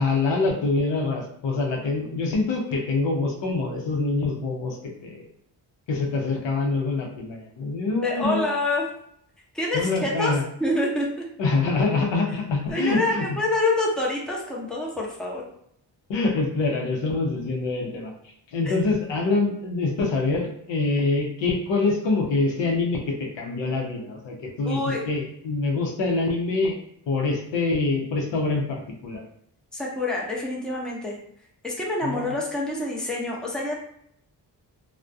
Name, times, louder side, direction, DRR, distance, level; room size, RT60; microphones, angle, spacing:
voice 1, 0.0-4.8 5.0-5.3 5.9-8.5 9.7-10.4 11.4-13.3 16.1-18.1 18.5-24.8 25.1-26.8 27.1-29.2 32.0-32.3, left 3 dB, 80° left, 0 dB, 0.7 m, -25 dB
voice 2, 8.0-8.9 9.5-11.3 12.7-15.4 18.6-18.7 24.7-25.0 29.7-31.2 31.6-33.7, left 2 dB, ahead, -3 dB, 0.6 m, -26 dB
2.3 x 2.1 x 2.5 m, 0.70 s
cardioid pair, 60°, 43 cm